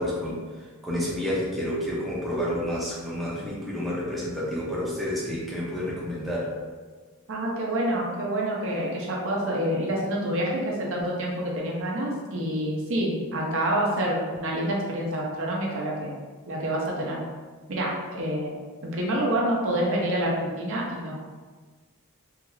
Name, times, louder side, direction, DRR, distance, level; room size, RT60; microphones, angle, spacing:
voice 1, 0.0-6.5, equal, ahead, -8 dB, 0.5 m, -30 dB
voice 2, 7.3-16.1 16.5-17.2 17.7-21.2, right 1 dB, 60° right, -2 dB, 0.6 m, -27 dB
2.8 x 2.4 x 3.0 m, 1.4 s
head